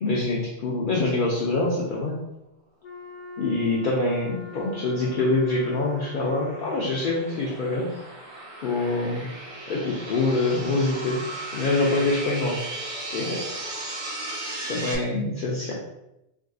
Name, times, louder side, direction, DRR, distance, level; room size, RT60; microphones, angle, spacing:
voice 1, 0.0-2.2 3.4-8.0 8.6-9.3 9.7-12.6 13.1-13.5 14.7-15.7, left 2 dB, 60° left, -4 dB, 0.6 m, -25 dB
Wind instrument woodwind instrument, 2.8-7.5, left 4 dB, 80° left, 0.9 m, -43 dB
sound 1, 4.1-15.0, right 2 dB, 45° right, 0.4 m, -37 dB
3.5 x 2.5 x 2.3 m, 0.87 s
omnidirectional pair, 1.1 m